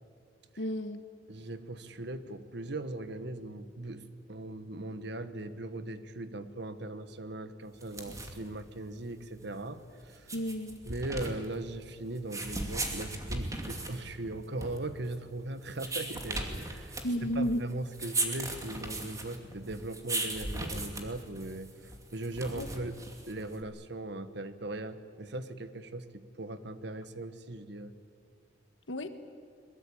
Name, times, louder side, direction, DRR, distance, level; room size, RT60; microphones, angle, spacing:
voice 1, 0.6-1.0 10.3-10.8 17.0-17.6 22.6-22.7 28.9-29.1, equal, 85° left, 9 dB, 1.4 m, -32 dB
voice 2, 1.3-10.3 10.8-22.9 23.3-27.9, right 2 dB, 65° right, 11 dB, 1.3 m, -39 dB
sound 1, 7.7-23.6, right 2 dB, 20° right, 2.5 m, -38 dB
23.0 x 22.0 x 8.6 m, 2.4 s
head